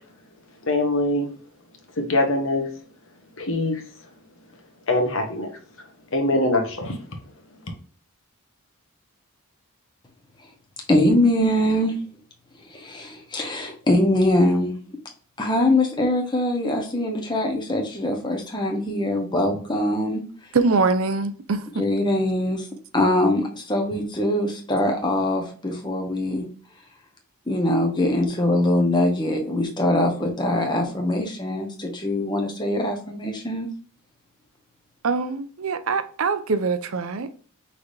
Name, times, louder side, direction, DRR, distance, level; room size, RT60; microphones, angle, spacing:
voice 1, 0.6-1.3 2.0-2.7 3.4-3.8 4.9-5.5 6.1-7.0, left 2 dB, 60° left, 1.1 m, -23 dB
voice 2, 10.9-11.9 12.7-14.7 15.4-20.2 21.8-22.7 22.9-26.4 27.5-33.7, left 1 dB, 20° left, 1.1 m, -22 dB
voice 3, 20.5-21.8 35.0-37.3, right 4 dB, 65° right, 0.5 m, -23 dB
5.8 x 3.3 x 2.7 m
head